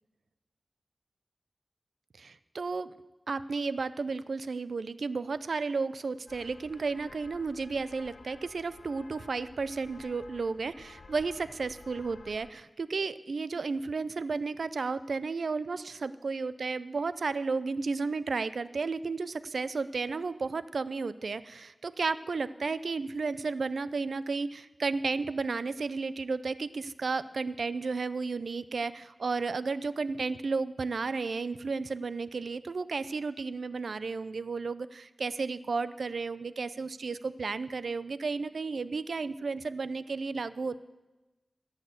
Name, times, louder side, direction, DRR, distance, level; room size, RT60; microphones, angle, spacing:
voice 1, 2.2-2.9 3.3-40.8, right 4 dB, 85° right, 15 dB, 0.4 m, -33 dB
sound 1, 6.3-12.5, left 4 dB, 75° left, 0.5 m, -53 dB
16.0 x 6.5 x 7.9 m, 1.1 s
wide cardioid pair, 85°, 0 cm